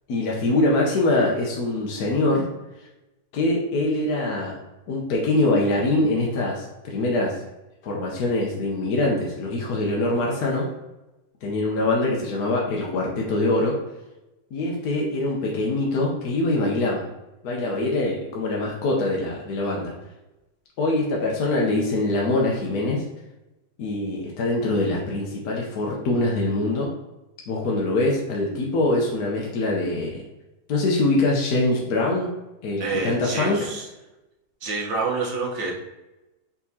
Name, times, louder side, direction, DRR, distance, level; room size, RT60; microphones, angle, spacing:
voice 1, 0.1-2.4 3.3-4.6 4.9-7.4 7.8-10.7 11.4-13.7 14.5-17.0 17.4-19.9 20.8-23.0 23.8-26.9 27.5-30.2 30.7-32.3 32.6-33.6, left 2 dB, 65° left, -2 dB, 1.2 m, -23 dB
voice 2, 32.8-33.8 34.6-35.7, right 3 dB, 80° right, -1 dB, 1.7 m, -27 dB
4.6 x 4.2 x 2.7 m, 0.99 s
omnidirectional pair, 1.9 m